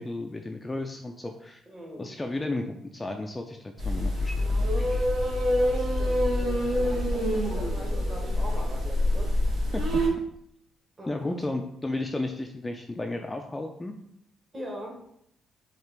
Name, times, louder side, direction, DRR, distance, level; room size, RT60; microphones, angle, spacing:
voice 1, 0.0-1.6 2.0-5.0 9.7-10.0 11.1-14.0, left 2 dB, 15° left, 3 dB, 0.3 m, -33 dB
voice 2, 1.7-2.1 5.6-9.3 11.0-11.4 14.5-15.0, right 1 dB, 30° right, 0 dB, 1.2 m, -41 dB
sound 1, 3.8-10.1, left 1 dB, 75° right, 1.5 m, -26 dB
4.6 x 2.4 x 3.3 m, 0.73 s
cardioid pair, 90°, 0 cm